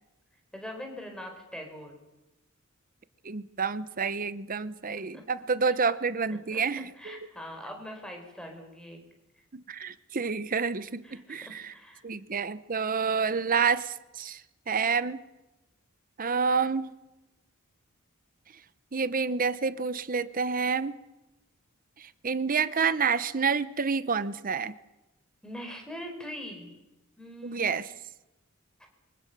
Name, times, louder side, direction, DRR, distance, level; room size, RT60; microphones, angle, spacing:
voice 1, 0.5-2.0 5.1-5.2 5.6-5.8 6.3-6.6 7.0-9.0 11.0-12.0 25.4-26.7 27.2-27.7, equal, 5° left, 3 dB, 4.7 m, -42 dB
voice 2, 3.2-7.3 9.5-11.7 12.0-14.4 14.7-15.2 16.2-16.9 18.9-21.0 22.0-24.7 27.4-27.9, right 5 dB, 40° right, 15 dB, 0.8 m, -29 dB
27.5 x 24.0 x 6.8 m, 1.0 s
head